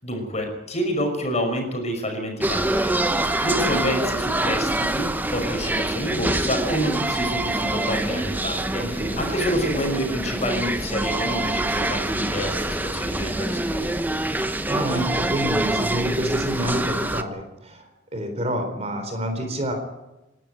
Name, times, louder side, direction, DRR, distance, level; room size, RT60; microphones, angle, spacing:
voice 1, 0.0-13.9, equal, 35° left, 4 dB, 5.5 m, -28 dB
sound 1, 2.4-17.2, right 1 dB, 10° right, 0.9 m, -25 dB
voice 2, 8.8-9.2 14.7-19.7, equal, 30° right, 6 dB, 4.0 m, -28 dB
28.5 x 12.5 x 9.1 m, 0.99 s
head